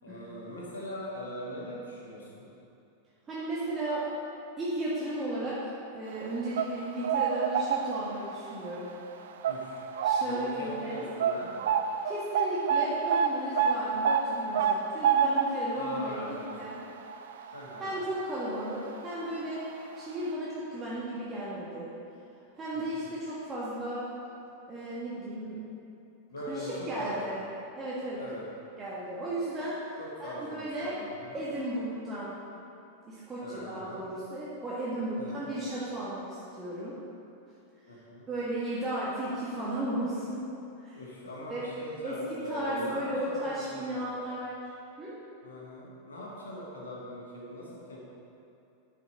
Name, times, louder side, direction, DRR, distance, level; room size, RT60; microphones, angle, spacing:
voice 1, 0.0-2.5 9.5-9.8 10.2-11.5 15.7-16.6 17.5-17.9 22.7-23.0 26.3-27.2 28.2-28.4 30.0-31.4 33.4-34.0 35.2-35.4 37.9-38.3 40.9-44.2 45.4-48.0, equal, 70° left, -4 dB, 1.7 m, -41 dB
voice 2, 3.3-4.0 4.6-8.9 10.0-11.0 12.0-16.8 17.8-19.7 20.0-21.9 22.5-24.1 24.7-25.6 26.4-27.4 27.7-28.2 28.8-31.0 31.3-32.4 33.0-37.0 38.3-40.4 40.8-41.0 41.5-41.7 42.0-44.7 45.0-45.2, right 1 dB, 20° right, -9 dB, 1.5 m, -35 dB
sound 1, 6.3-8.3 8.7-8.9 9.4-10.5 10.8-10.9 11.2-18.2 18.5-18.7 19.6-19.7 20.0-20.1, right 7 dB, 60° right, 0.4 m, -28 dB
10.0 x 5.1 x 4.3 m, 2.7 s
figure-of-eight pair, 90°, 0 cm